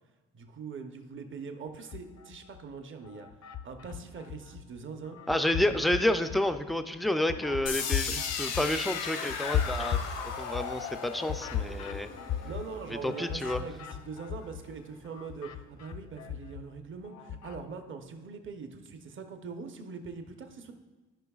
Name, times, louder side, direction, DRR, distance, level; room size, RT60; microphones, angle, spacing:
voice 1, 0.3-3.3 3.6-5.2 5.5-5.8 12.4-20.7, right 5 dB, 40° right, 6 dB, 0.8 m, -42 dB
sound 1, 1.8-2.6 3.0-4.6 5.0-14.7 15.0-17.6, left 9 dB, 65° left, 0.6 m, -37 dB
voice 2, 5.3-10.0 10.4-12.1 13.0-13.6, left 1 dB, ahead, 9 dB, 0.3 m, -29 dB
sound 2, 7.7-13.6, left 6 dB, 90° left, 0.9 m, -37 dB
13.5 x 5.3 x 2.4 m, 1.2 s
cardioid pair, 90°, 30 cm